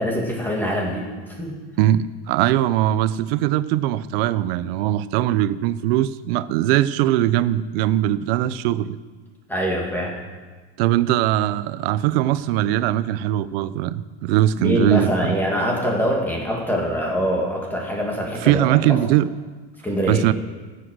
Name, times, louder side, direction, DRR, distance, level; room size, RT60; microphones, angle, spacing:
voice 1, 0.0-1.6 9.5-10.2 14.6-19.0 19.8-20.3, equal, 5° left, -2 dB, 2.3 m, -24 dB
voice 2, 1.8-9.0 10.8-15.1 18.4-19.3 20.1-20.3, right 13 dB, 75° right, 16 dB, 0.7 m, -20 dB
16.0 x 7.7 x 6.3 m, 1.3 s
supercardioid pair, 145°, 30 cm